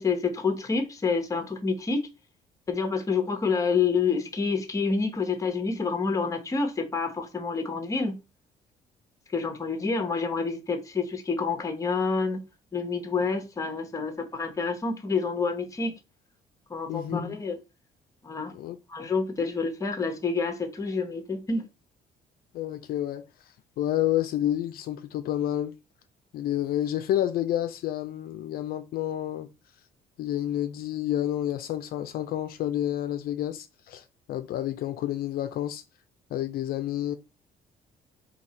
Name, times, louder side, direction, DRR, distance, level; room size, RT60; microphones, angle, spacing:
voice 1, 0.0-2.0 2.7-8.2 9.3-12.4 12.7-16.0 16.7-17.6 18.2-18.5 18.9-21.6, left 4 dB, 20° left, 0.9 m, -28 dB
voice 2, 16.9-17.2 18.5-18.8 22.5-23.3 23.8-25.7 26.3-29.5 30.2-35.8 36.3-37.2, left 12 dB, 70° left, 0.4 m, -29 dB
3.9 x 2.8 x 4.1 m
cardioid pair, 125°, 16 cm